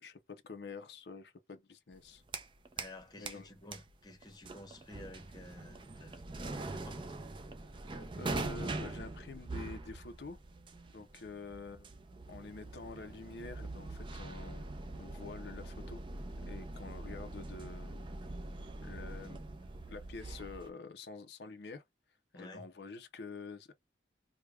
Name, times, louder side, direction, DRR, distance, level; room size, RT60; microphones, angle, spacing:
voice 1, 0.0-2.2 3.2-3.5 7.9-10.4 10.9-11.9 12.3-14.7 15.0-16.0 16.5-18.0 18.8-19.4 19.9-21.8 22.3-23.7, left 4 dB, 70° left, 0.5 m, -47 dB
sound 1, 1.9-3.0 3.3-20.7, right 2 dB, 30° right, 0.4 m, -43 dB
voice 2, 2.8-7.1 22.3-22.7, left 1 dB, 25° left, 0.8 m, -52 dB
4.7 x 2.2 x 2.3 m
head